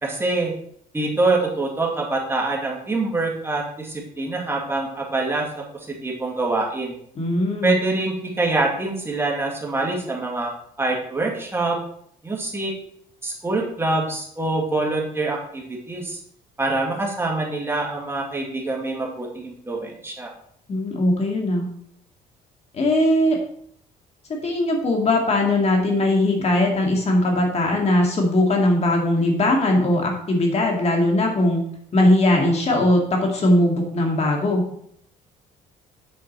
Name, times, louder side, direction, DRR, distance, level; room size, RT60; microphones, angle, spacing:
voice 1, 0.0-0.5 0.9-7.0 7.6-10.5 10.8-11.8 12.2-12.7 13.2-16.2 16.6-20.3, right 2 dB, 15° right, -1 dB, 2.1 m, -25 dB
voice 2, 7.2-7.7 20.7-21.7 22.7-23.4 24.3-31.6 31.9-34.6, left 1 dB, 40° left, 1 dB, 2.0 m, -20 dB
7.8 x 5.1 x 4.2 m, 0.67 s
cardioid pair, 110°, 17 cm